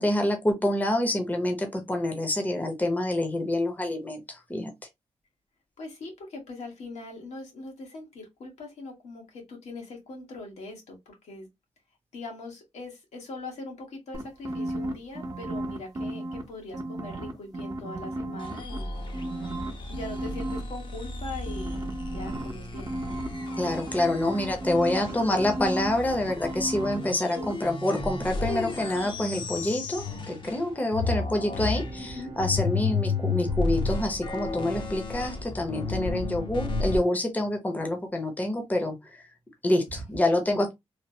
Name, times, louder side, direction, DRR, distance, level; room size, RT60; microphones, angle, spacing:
voice 1, 0.0-4.7 23.6-39.2 39.6-40.7, left 1 dB, 15° left, 0.7 m, -27 dB
voice 2, 5.8-11.5 12.1-22.9 25.3-25.5 32.2-32.3, left 2 dB, 85° left, 1.2 m, -41 dB
sound 1, 14.1-16.4 16.7-18.8 19.1-20.6 21.5-27.1 27.4-27.5, right 1 dB, 35° right, 0.7 m, -34 dB
sound 2, 18.4-30.7 30.9-37.0, left 3 dB, 45° left, 0.7 m, -33 dB
Bowed string instrument, 30.2-35.7, right 4 dB, 65° right, 0.7 m, -47 dB
3.2 x 2.0 x 2.7 m
cardioid pair, 90°, 11 cm